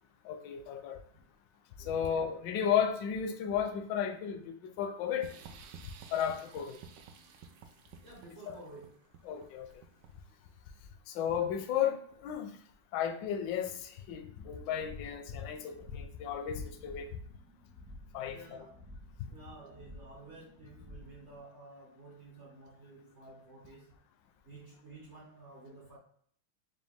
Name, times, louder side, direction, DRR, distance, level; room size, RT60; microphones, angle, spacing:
voice 1, 0.2-1.0 1.9-5.3 6.1-6.8 9.3-9.7 11.1-12.5 12.9-17.1 18.1-18.4, left 8 dB, 75° left, 1.1 m, -33 dB
voice 2, 1.8-2.2 8.0-9.1 15.3-15.4 18.3-18.8 19.3-23.9 24.4-26.0, right 2 dB, 65° right, 0.7 m, -52 dB
sound 1, 5.2-10.4, right 6 dB, 80° right, 1.0 m, -53 dB
sound 2, 14.1-21.4, left 1 dB, 30° right, 0.4 m, -54 dB
5.0 x 2.3 x 3.4 m
omnidirectional pair, 2.4 m